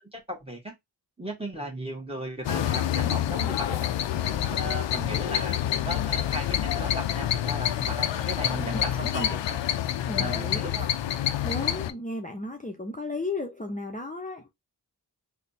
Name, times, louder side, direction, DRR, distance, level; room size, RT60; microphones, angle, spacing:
voice 1, 0.1-0.7 1.2-3.9 4.1-9.6 10.2-10.9, right 1 dB, 15° right, 1.4 m, -36 dB
sound 1, 2.4-11.9, left 11 dB, 85° left, 0.5 m, -27 dB
voice 2, 8.7-9.3 10.1-10.7 11.4-14.5, left 2 dB, 20° left, 0.7 m, -34 dB
3.3 x 2.2 x 4.1 m
cardioid pair, 60°, 43 cm